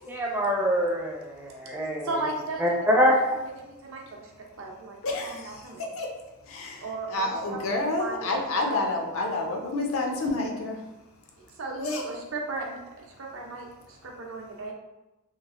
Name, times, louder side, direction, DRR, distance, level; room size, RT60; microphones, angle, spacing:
voice 1, 0.1-2.1 2.6-3.2, equal, 10° right, -2 dB, 0.4 m, -24 dB
voice 2, 2.0-2.6 2.9-3.0 3.6-4.3 4.6-5.9 6.8-8.9 11.6-12.8 13.2-13.7 14.0-14.7, right 2 dB, 70° right, 0 dB, 0.6 m, -36 dB
voice 3, 5.0-5.4 6.0-6.1 6.5-6.8 7.1-10.8 11.8-12.0, left 2 dB, 70° left, 1 dB, 0.5 m, -28 dB
3.0 x 2.4 x 2.4 m, 1.0 s
head